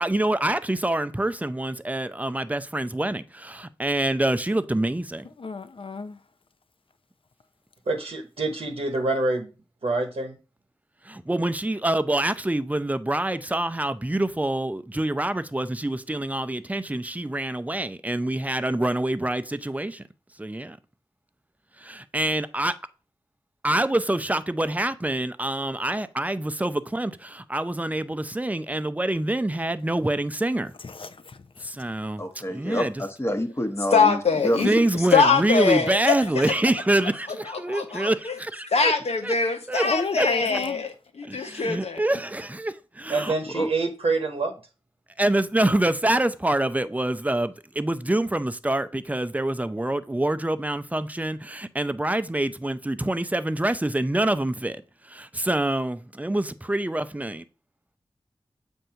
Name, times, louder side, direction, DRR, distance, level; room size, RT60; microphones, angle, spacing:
voice 1, 0.0-5.2 11.0-20.0 20.4-20.8 21.8-22.7 23.6-30.7 31.6-33.0 34.6-38.9 39.2-39.4 39.7-39.9 40.2-40.3 41.3-43.3 45.2-57.4, right 1 dB, 15° right, 0.5 m, -26 dB
voice 2, 5.4-6.2 30.8-31.4 39.8-40.8, left 3 dB, 60° left, 0.6 m, -31 dB
voice 3, 7.9-9.5 9.8-10.4 43.1-44.5, right 3 dB, 70° right, 1.0 m, -26 dB
voice 4, 32.2-34.8 43.5-43.7, equal, 25° left, 1.0 m, -27 dB
voice 5, 33.9-34.7 35.1-36.1 37.7-38.3 38.7-42.0, left 5 dB, 90° left, 0.9 m, -23 dB
7.6 x 2.7 x 5.7 m
cardioid pair, 50°, 10 cm